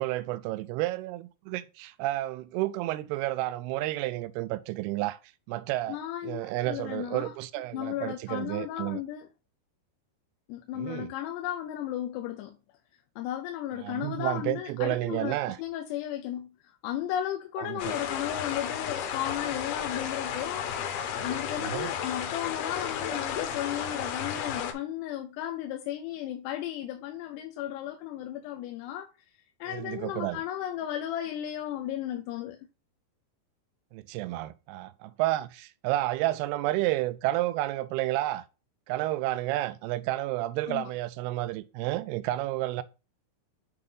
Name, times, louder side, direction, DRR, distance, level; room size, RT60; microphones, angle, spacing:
voice 1, 0.0-5.2 5.5-6.0 6.2-9.0 10.8-11.1 13.8-15.6 17.6-18.0 21.6-21.9 29.7-30.4 33.9-38.4 38.9-42.8, right 16 dB, 80° right, 2.5 m, -31 dB
voice 2, 5.9-7.3 7.7-9.3 10.5-12.6 13.2-16.5 16.8-29.1 29.6-32.6 40.7-40.9, left 12 dB, 90° left, 2.8 m, -35 dB
sound 1, 17.8-24.7, left 8 dB, 75° left, 2.6 m, -33 dB
7.9 x 3.9 x 3.8 m
omnidirectional pair, 4.7 m